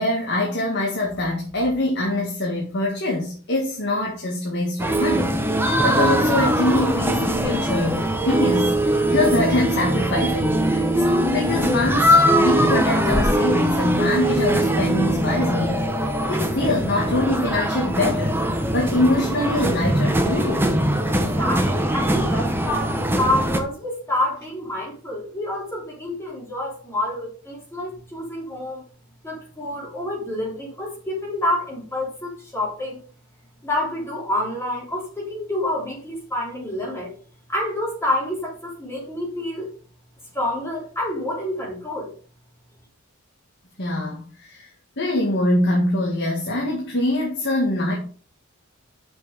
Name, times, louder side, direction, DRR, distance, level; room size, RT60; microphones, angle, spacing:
voice 1, 0.0-20.8 43.8-44.7 45.0-48.0, left 1 dB, 55° left, -2 dB, 1.9 m, -24 dB
sound 1, 4.8-23.6, right 1 dB, 10° right, 1.0 m, -21 dB
voice 2, 21.4-28.8 29.2-33.0 33.6-37.1 37.5-39.7 40.3-42.1, left 1 dB, 10° left, -4 dB, 3.2 m, -28 dB
6.3 x 6.1 x 5.1 m, 0.41 s
head